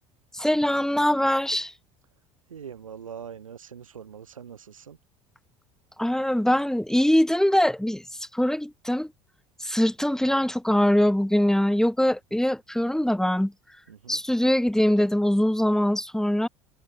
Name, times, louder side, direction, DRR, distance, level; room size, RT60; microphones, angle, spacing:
voice 1, 0.3-1.7 6.0-9.1 9.6-13.5 14.1-16.5, left 1 dB, 5° left, 3.2 m, -23 dB
voice 2, 2.5-5.0 13.9-14.2, right 7 dB, 85° right, 6.4 m, -42 dB
figure-of-eight pair, 65°, 17 cm